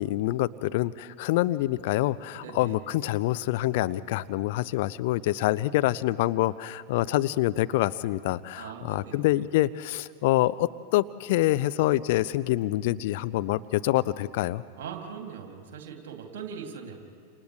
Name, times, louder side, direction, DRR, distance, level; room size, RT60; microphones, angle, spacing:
voice 1, 0.0-14.6, left 16 dB, 50° left, 14 dB, 0.5 m, -26 dB
voice 2, 2.3-2.8 8.6-9.3 14.8-17.0, right 7 dB, 55° right, 2 dB, 2.9 m, -40 dB
29.0 x 27.5 x 3.3 m, 2.3 s
figure-of-eight pair, 90°, 0 cm